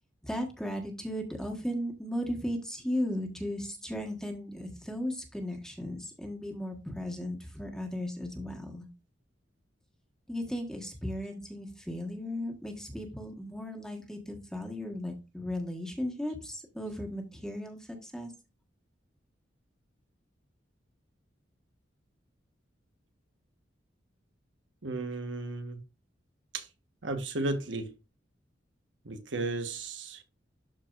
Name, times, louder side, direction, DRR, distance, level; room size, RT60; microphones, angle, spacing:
voice 1, 0.2-8.9 10.3-18.3, left 1 dB, 5° left, 1.4 m, -36 dB
voice 2, 24.8-25.8 26.5-26.7 27.0-27.9 29.0-30.2, right 2 dB, 75° right, 1.3 m, -34 dB
12.5 x 4.5 x 2.5 m
head